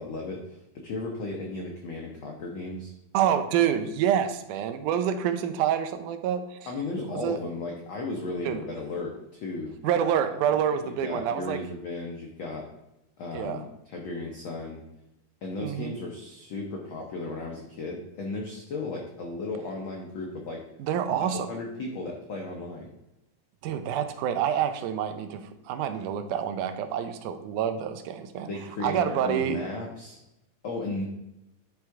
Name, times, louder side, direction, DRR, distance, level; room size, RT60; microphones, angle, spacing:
voice 1, 0.0-2.9 6.7-9.7 10.2-10.5 10.8-12.6 13.2-14.8 15.4-20.6 21.2-22.9 28.5-30.2 30.6-31.0, left 2 dB, 85° left, 1 dB, 1.1 m, -35 dB
voice 2, 3.1-6.6 7.2-7.4 8.5-8.6 9.8-11.6 13.3-13.6 15.6-15.9 20.8-21.5 23.6-28.5 28.8-29.6, right 9 dB, 85° right, 8 dB, 2.2 m, -27 dB
10.0 x 3.6 x 4.5 m, 0.89 s
omnidirectional pair, 3.6 m